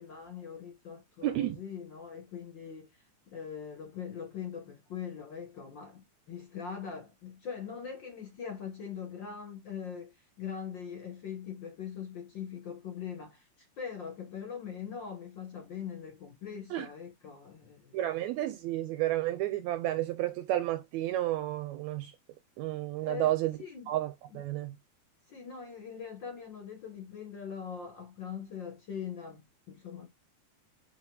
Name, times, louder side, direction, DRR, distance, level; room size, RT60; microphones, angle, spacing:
voice 1, 0.0-13.5 13.8-17.9 23.0-23.3 23.6-23.9 24.3-24.4 25.3-30.1, left 7 dB, 55° left, 1.5 m, -42 dB
voice 2, 1.2-1.6 16.7-16.9 17.9-22.2 22.6-23.6 23.9-24.8, right 14 dB, 80° right, 1.9 m, -31 dB
6.4 x 3.6 x 2.3 m
omnidirectional pair, 3.3 m